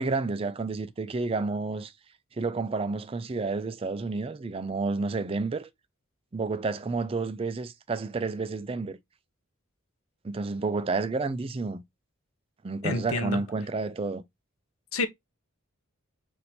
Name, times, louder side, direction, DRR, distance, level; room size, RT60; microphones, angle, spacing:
voice 1, 0.0-1.9 2.4-5.7 6.3-9.0 10.2-11.8 12.6-14.2, right 3 dB, 25° right, 0.4 m, -30 dB
voice 2, 12.8-13.4 14.9-15.1, left 3 dB, 85° left, 0.8 m, -28 dB
6.1 x 2.6 x 2.7 m
head